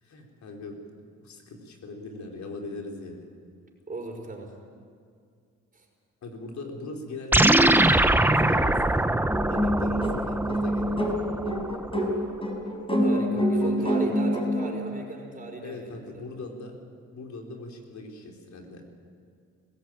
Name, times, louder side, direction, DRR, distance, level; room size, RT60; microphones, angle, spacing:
voice 1, 0.0-3.3 6.2-8.8 9.5-11.2 13.6-13.9 15.6-16.8 17.1-18.8, left 2 dB, 65° left, 1 dB, 4.0 m, -40 dB
voice 2, 3.9-4.5 5.7-5.9 12.9-15.9 16.1-16.3, right 3 dB, 30° right, 1 dB, 5.3 m, -38 dB
sound 1, 7.3-12.0, right 1 dB, 5° right, 0.9 m, -22 dB
sound 2, 9.3-14.8, equal, 20° left, 4.9 m, -26 dB
20.5 x 16.5 x 9.0 m, 2.2 s
cardioid pair, 80°, 30 cm